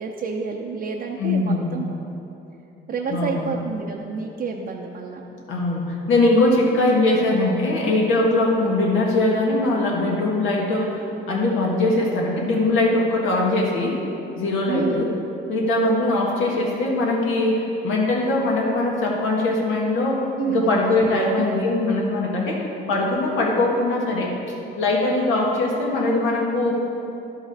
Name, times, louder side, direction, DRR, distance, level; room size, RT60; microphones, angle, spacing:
voice 1, 0.0-2.0 2.9-5.2 14.7-15.0 20.4-21.5, right 5 dB, 50° right, 0 dB, 0.6 m, -29 dB
voice 2, 1.2-1.8 3.1-3.5 5.5-14.0 14.4-15.1 15.5-24.3 24.8-26.7, left 2 dB, 85° left, -2 dB, 1.7 m, -21 dB
11.5 x 5.6 x 4.8 m, 2.9 s
cardioid pair, 90°, 20 cm